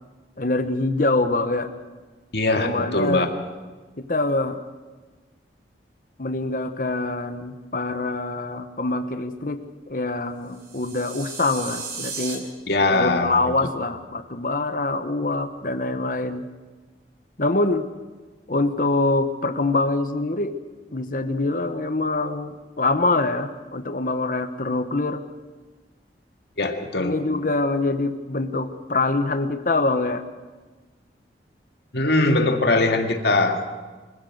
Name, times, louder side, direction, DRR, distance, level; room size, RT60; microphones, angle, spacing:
voice 1, 0.4-1.7 2.5-3.4 4.0-4.6 6.2-12.5 12.9-16.4 17.4-17.9 18.5-20.6 20.9-25.2 27.0-30.2, left 2 dB, 50° left, 8 dB, 1.1 m, -24 dB
voice 2, 2.3-3.3 12.7-13.4 26.6-27.2 31.9-33.6, left 2 dB, 65° left, 4 dB, 2.1 m, -21 dB
sound 1, 10.5-12.4, right 5 dB, 65° right, 4.0 m, -35 dB
24.5 x 16.0 x 7.8 m, 1.3 s
head